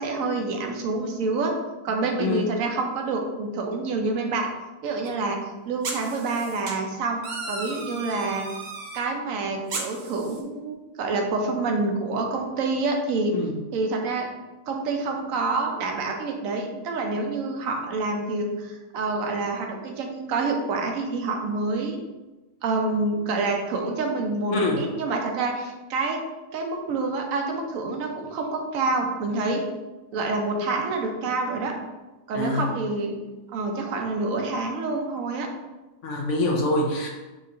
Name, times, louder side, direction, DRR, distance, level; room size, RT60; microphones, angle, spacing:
voice 1, 0.0-1.5 1.8-4.5 4.8-5.4 5.7-8.4 8.9-13.3 13.7-14.3 14.7-22.0 22.6-26.2 26.5-29.6 30.1-31.7 32.3-33.2 33.5-35.5, right 3 dB, 80° right, 2 dB, 1.0 m, -27 dB
sound 1, 5.0-5.1 5.8-6.7 7.2-9.0 9.7-10.4, right 3 dB, 55° right, 0.5 m, -35 dB
voice 2, 32.3-32.7 36.0-37.1, left 2 dB, 70° left, 0 dB, 1.0 m, -25 dB
4.5 x 2.4 x 2.7 m, 1.1 s
omnidirectional pair, 1.4 m